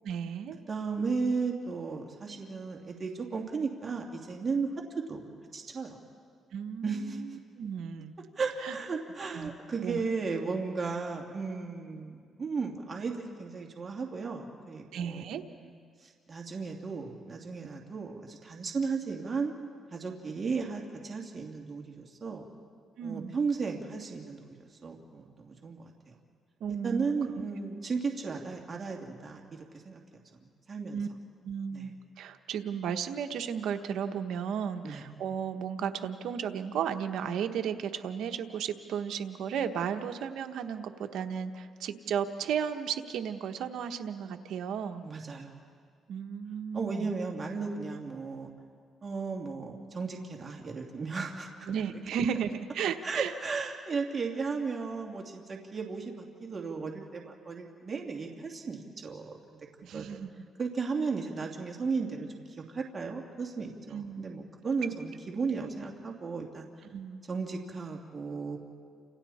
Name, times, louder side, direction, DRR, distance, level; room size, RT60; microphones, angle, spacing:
voice 1, 0.0-0.6 6.5-8.1 8.6-8.7 9.3-9.5 9.8-10.0 14.9-15.4 23.0-23.4 26.6-27.1 30.9-31.1 31.4-45.0 46.1-47.1 51.7-53.3 59.8-60.3 63.9-64.3 66.9-67.2, right 7 dB, 75° right, 6 dB, 1.1 m, -34 dB
voice 2, 0.7-4.7 5.0-5.2 5.5-6.0 6.8-7.2 8.4-15.3 15.6-15.7 16.0-19.5 19.9-22.4 23.0-24.6 24.8-26.1 26.8-30.0 30.4-31.0 31.7-31.9 34.8-35.1 45.0-45.6 46.7-48.5 49.0-51.7 53.0-59.6 59.9-60.2 60.6-62.3 62.7-66.7 67.3-68.6, right 4 dB, 35° right, 1 dB, 2.6 m, -35 dB
30.0 x 27.5 x 4.3 m, 2.1 s
cardioid pair, 90°, 0 cm